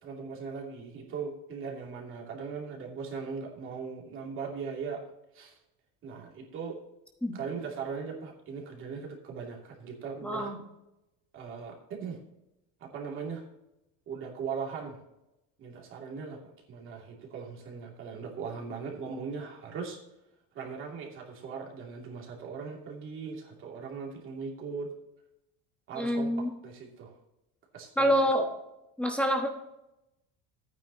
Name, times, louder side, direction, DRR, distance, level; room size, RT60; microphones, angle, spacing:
voice 1, 0.0-5.0 5.3-5.6 6.0-6.8 7.3-10.5 11.3-12.2 12.8-13.5 14.1-15.0 15.6-16.4 16.7-20.0 20.5-24.9 25.9-27.1 27.7-28.2, right 5 dB, 40° right, -1 dB, 2.7 m, -39 dB
voice 2, 10.2-10.6 25.9-26.5 28.0-28.4 29.0-29.5, equal, 5° left, 2 dB, 1.1 m, -26 dB
14.5 x 9.3 x 2.9 m, 0.89 s
cardioid pair, 165°, 31 cm